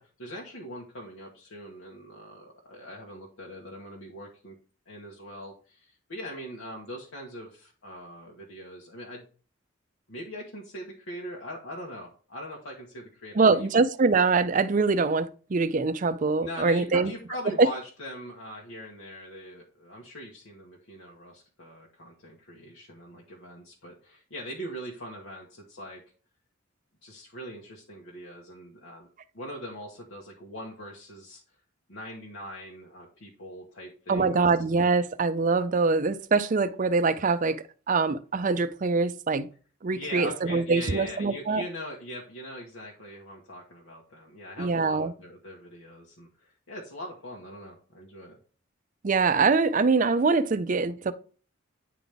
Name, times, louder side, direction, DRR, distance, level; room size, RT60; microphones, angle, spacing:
voice 1, 0.0-4.6 4.9-9.2 10.1-13.7 16.4-26.0 27.0-29.1 29.3-31.4 31.9-34.5 39.9-48.4, equal, 75° left, 1.3 m, -41 dB
voice 2, 13.3-17.1 17.6-17.7 34.1-39.5 39.8-41.6 44.6-45.1 49.0-51.1, right 4 dB, 40° right, 0.4 m, -24 dB
9.3 x 4.0 x 3.4 m
head